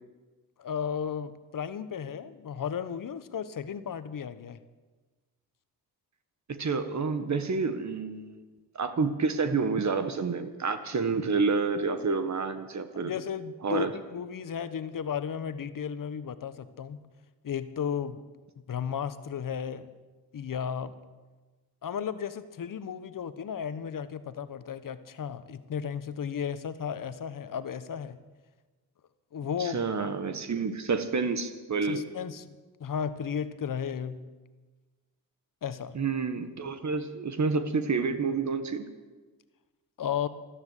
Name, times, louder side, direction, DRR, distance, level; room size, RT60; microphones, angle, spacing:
voice 1, 0.6-4.6 12.9-17.0 17.4-18.2 18.7-19.9 20.3-20.9 21.8-28.2 29.3-29.8 31.8-34.3 35.6-36.0 40.0-40.3, left 7 dB, 55° left, 13 dB, 1.2 m, -34 dB
voice 2, 6.5-8.4 8.7-13.1 13.6-13.9 29.6-32.0 35.9-38.9, right 4 dB, 45° right, 10 dB, 1.5 m, -29 dB
13.5 x 12.5 x 8.2 m, 1.3 s
cardioid pair, 65°, 38 cm